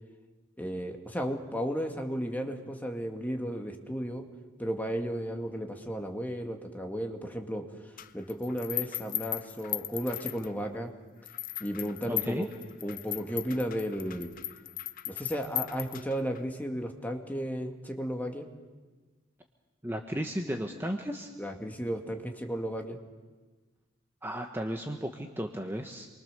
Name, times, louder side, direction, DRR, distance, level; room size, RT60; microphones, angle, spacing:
voice 1, 0.6-4.2 4.6-7.6 8.1-10.9 11.6-12.5 12.8-14.3 15.1-18.5 21.4-23.0, equal, 10° left, 3 dB, 2.0 m, -34 dB
sound 1, 8.0-10.8 11.3-16.4, left 14 dB, 45° left, 0.7 m, -37 dB
voice 2, 12.1-12.5 19.8-21.3 24.2-26.1, equal, 10° right, 3 dB, 1.2 m, -34 dB
28.0 x 23.5 x 6.8 m, 1.3 s
head